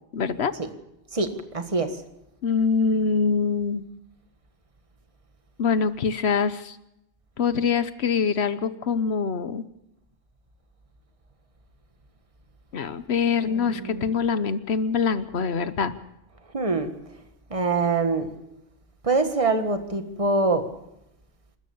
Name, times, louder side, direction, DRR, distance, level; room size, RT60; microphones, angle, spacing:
voice 1, 0.1-0.5 2.4-3.9 5.6-6.8 7.4-9.6 12.7-15.9, left 5 dB, 75° left, 13 dB, 1.2 m, -24 dB
voice 2, 1.1-1.9 13.4-13.5 13.8-14.1 16.5-16.9 17.5-18.3 19.0-20.7, right 3 dB, 30° right, 8 dB, 1.6 m, -24 dB
27.5 x 13.5 x 7.1 m, 0.85 s
omnidirectional pair, 1.1 m